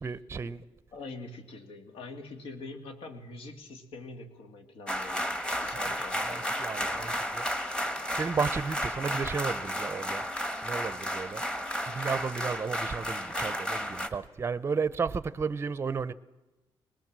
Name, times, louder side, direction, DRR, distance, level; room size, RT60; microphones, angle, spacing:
voice 1, 0.0-0.6 5.8-7.5 8.2-10.3 10.6-11.4 11.9-16.1, right 5 dB, 25° right, 0.7 m, -33 dB
voice 2, 0.9-5.3 5.6-6.5, left 3 dB, 70° left, 2.6 m, -44 dB
sound 1, 4.9-14.1, equal, 10° left, 1.4 m, -33 dB
20.5 x 20.0 x 7.5 m
cardioid pair, 150°, 10 cm